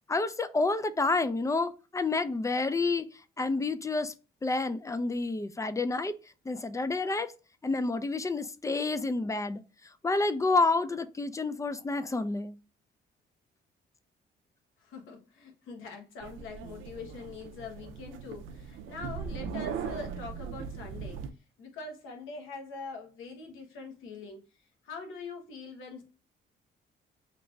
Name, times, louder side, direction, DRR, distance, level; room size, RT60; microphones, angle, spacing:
voice 1, 0.1-4.1 4.4-6.1 6.5-7.3 7.6-9.6 10.0-12.6, left 3 dB, 15° left, 0.4 m, -29 dB
voice 2, 14.8-21.2 21.6-26.0, left 4 dB, 85° left, 1.1 m, -43 dB
sound 1, 16.2-21.3, right 7 dB, 80° right, 0.5 m, -39 dB
3.2 x 2.5 x 3.1 m
cardioid pair, 90°, 20 cm